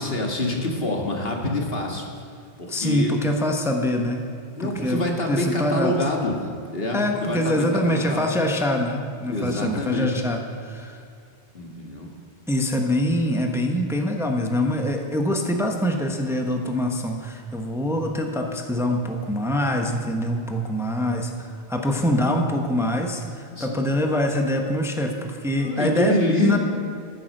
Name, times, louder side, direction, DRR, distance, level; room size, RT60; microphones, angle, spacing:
voice 1, 0.0-2.1 2.6-3.1 4.6-6.3 6.7-8.3 9.3-10.1 11.5-12.1 23.5-23.8 25.6-26.6, left 1 dB, 65° left, 1 dB, 2.1 m, -26 dB
voice 2, 2.7-4.2 4.6-5.9 6.9-11.0 12.5-26.6, left 1 dB, 5° right, 3 dB, 1.1 m, -24 dB
13.5 x 10.5 x 6.6 m, 2.4 s
omnidirectional pair, 1.1 m